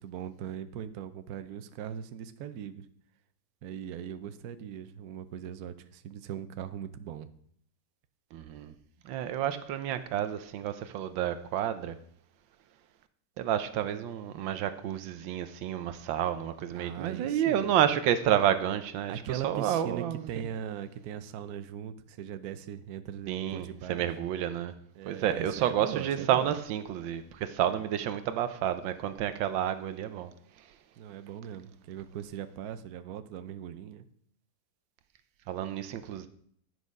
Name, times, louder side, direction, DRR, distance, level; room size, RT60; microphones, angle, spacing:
voice 1, 0.0-2.9 3.6-7.3 16.7-17.9 19.1-24.1 24.9-26.6 31.0-34.0, right 9 dB, 65° right, 1.0 m, -40 dB
voice 2, 8.3-8.7 9.0-12.0 13.4-20.3 23.3-24.7 25.1-30.3 35.5-36.3, right 10 dB, 85° right, 1.5 m, -30 dB
10.0 x 6.2 x 5.3 m
omnidirectional pair, 2.0 m